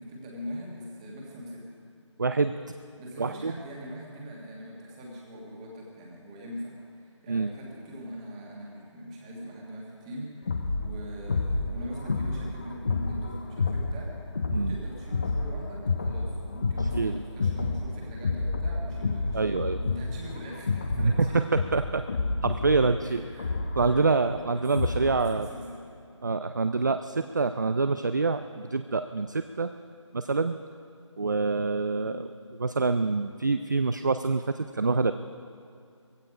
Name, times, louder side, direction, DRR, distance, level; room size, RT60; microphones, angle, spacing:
voice 1, 0.0-1.7 3.0-19.4 19.8-21.4 23.0-24.1 24.5-25.8 31.9-32.3, equal, 10° right, -2 dB, 1.6 m, -42 dB
voice 2, 2.2-2.6 3.2-3.5 7.3-7.5 14.5-14.8 16.9-17.2 19.3-19.8 21.0-22.0 22.4-23.3 23.8-25.5 26.2-29.7 30.1-30.6 31.2-32.3 32.6-35.1, right 4 dB, 40° right, 10 dB, 0.4 m, -26 dB
sound 1, 10.5-25.2, left 3 dB, 25° left, 0.6 m, -30 dB
16.5 x 15.5 x 4.9 m, 2.4 s
figure-of-eight pair, 170°, 16 cm